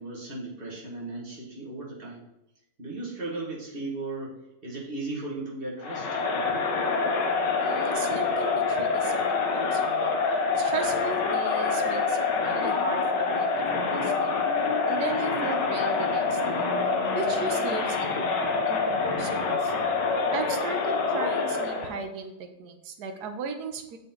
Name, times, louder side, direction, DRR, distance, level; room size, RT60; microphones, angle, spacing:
voice 1, 0.0-2.3 2.8-4.4 4.6-6.2, right 2 dB, 30° right, -4 dB, 2.0 m, -36 dB
Crowd, 5.8-22.0, left 4 dB, 70° left, 1.6 m, -26 dB
voice 2, 7.6-10.2 10.6-13.5 13.8-14.3 14.8-16.7 17.1-19.7 20.3-24.0, right 4 dB, 65° right, 5 dB, 1.4 m, -37 dB
7.0 x 5.9 x 3.9 m, 0.87 s
omnidirectional pair, 2.0 m